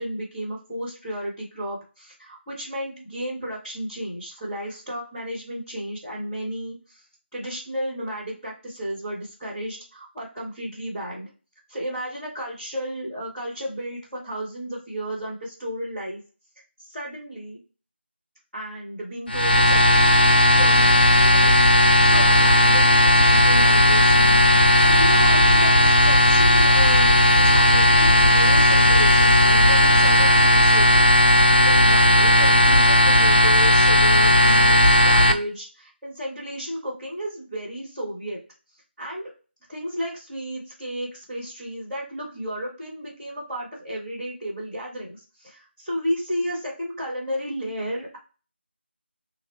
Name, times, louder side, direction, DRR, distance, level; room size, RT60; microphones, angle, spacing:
voice 1, 0.0-7.0 7.3-11.3 11.7-16.2 16.8-17.6 18.5-20.0 20.6-27.1 27.4-38.4 39.0-39.3 39.7-48.2, equal, ahead, -9 dB, 0.5 m, -33 dB
sound 1, 19.3-35.3, left 1 dB, 55° left, 0.5 m, -16 dB
3.2 x 2.0 x 4.1 m, 0.34 s
figure-of-eight pair, 170°, 6 cm